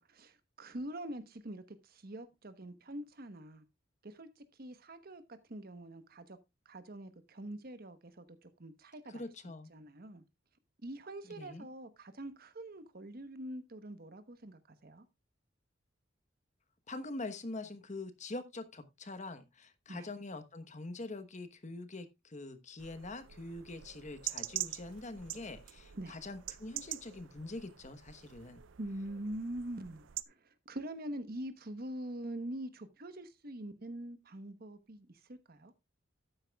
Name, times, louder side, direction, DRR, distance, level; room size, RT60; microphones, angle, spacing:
voice 1, 0.0-3.6 4.0-5.2 5.5-6.4 6.7-9.3 9.7-10.2 10.8-15.0 19.9-20.1 25.9-26.2 28.8-35.7, right 1 dB, 50° right, 1.1 m, -44 dB
voice 2, 9.1-9.7 11.2-11.7 16.9-28.6, left 2 dB, 40° left, 1.1 m, -44 dB
sound 1, 22.8-30.2, right 13 dB, 85° right, 0.5 m, -45 dB
12.5 x 9.2 x 2.3 m
head